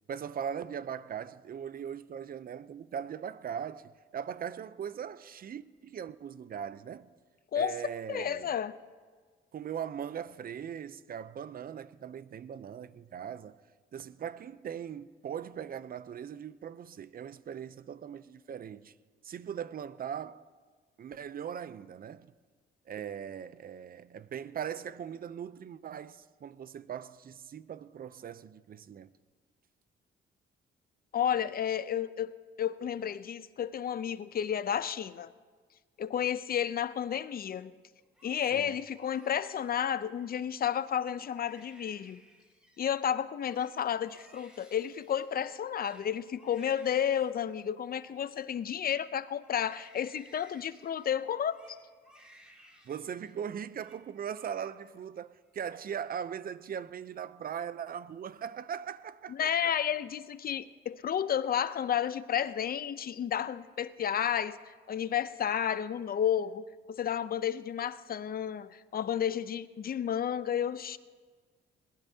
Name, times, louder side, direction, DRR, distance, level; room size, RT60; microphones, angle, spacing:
voice 1, 0.1-7.1 7.5-8.6 9.5-13.6 13.9-18.9 19.2-20.4 21.0-22.3 22.9-29.1 38.5-38.8 52.8-59.7, right 8 dB, 50° right, 0.6 m, -40 dB
voice 2, 8.1-8.8 31.1-35.3 36.0-37.7 38.2-42.2 42.8-51.6 59.3-71.0, left 9 dB, 50° left, 0.6 m, -32 dB
Crying sobbing, 38.0-40.3 40.8-40.9 41.2-42.9 43.2-49.0 49.4-53.3 53.6-54.0 54.3-55.0 55.3-56.0, equal, 5° right, 4.9 m, -60 dB
21.5 x 19.5 x 2.8 m
cardioid pair, 90°, 20 cm